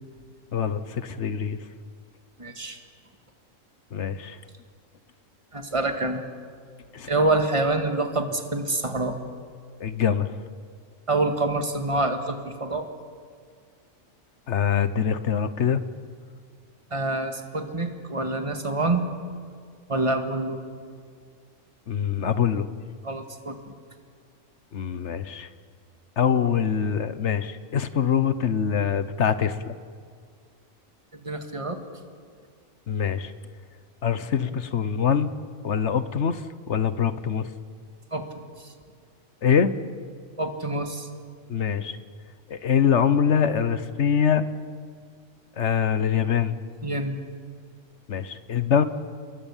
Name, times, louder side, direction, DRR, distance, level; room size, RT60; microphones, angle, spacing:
voice 1, 0.5-1.6 3.9-4.4 6.9-7.1 9.8-10.3 14.5-15.8 21.9-22.7 24.7-25.5 26.2-29.7 32.9-33.3 34.0-35.3 35.6-37.5 39.4-39.7 41.5-42.0 42.5-44.5 45.6-46.5 48.1-48.8, left 7 dB, 65° left, 13 dB, 1.2 m, -24 dB
voice 2, 2.4-2.8 5.5-6.2 7.1-9.2 11.1-12.9 16.9-19.1 19.9-20.6 23.0-23.7 26.3-26.5 31.1-31.8 38.1-38.7 40.4-41.1 46.8-47.2, right 2 dB, 25° right, 5 dB, 1.9 m, -26 dB
28.0 x 21.5 x 7.3 m, 2.1 s
omnidirectional pair, 1.3 m